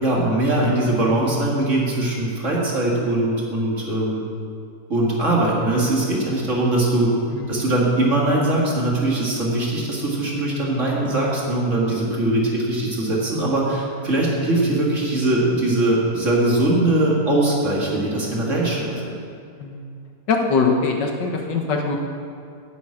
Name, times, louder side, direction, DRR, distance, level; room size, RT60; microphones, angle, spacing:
voice 1, 0.0-4.2 4.9-7.1 7.5-18.9, right 1 dB, 45° right, -4 dB, 2.5 m, -21 dB
voice 2, 7.3-7.7 10.6-10.7 19.6-19.9 20.3-22.0, left 4 dB, 80° left, 2 dB, 1.9 m, -22 dB
9.6 x 7.8 x 8.7 m, 2.4 s
omnidirectional pair, 1.9 m